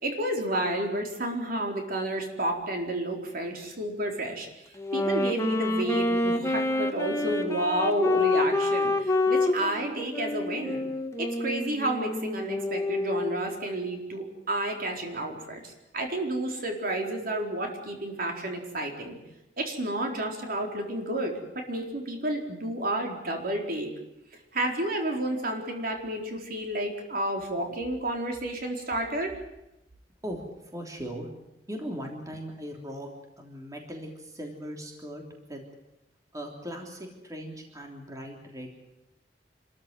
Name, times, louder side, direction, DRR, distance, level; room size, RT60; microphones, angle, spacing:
voice 1, 0.0-4.5 4.9-10.8 11.2-19.2 19.6-23.9 24.5-29.4, right 1 dB, 55° right, 2 dB, 4.3 m, -31 dB
Wind instrument woodwind instrument, 4.8-13.5, left 2 dB, 15° left, 2.0 m, -28 dB
voice 2, 30.2-31.3 31.7-35.2 35.5-35.6 36.3-38.8, equal, 20° right, 1 dB, 3.3 m, -39 dB
28.0 x 14.0 x 9.3 m, 0.92 s
head